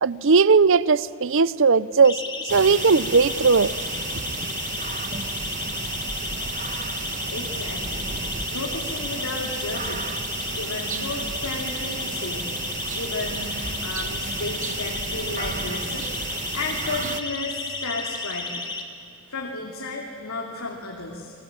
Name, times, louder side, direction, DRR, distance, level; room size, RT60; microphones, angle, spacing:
voice 1, 0.0-2.2 2.5-3.7, right 4 dB, 60° right, 0.7 m, -18 dB
Siren, 2.0-18.8, left 3 dB, 20° left, 2.3 m, -32 dB
sound 1, 2.5-17.2, right 5 dB, 35° right, 1.2 m, -33 dB
voice 2, 7.3-8.1 8.5-10.1 10.6-12.5 12.9-13.5 13.8-16.1 16.5-18.6 19.3-21.3, left 2 dB, 75° left, 2.9 m, -33 dB
30.0 x 20.5 x 8.9 m
head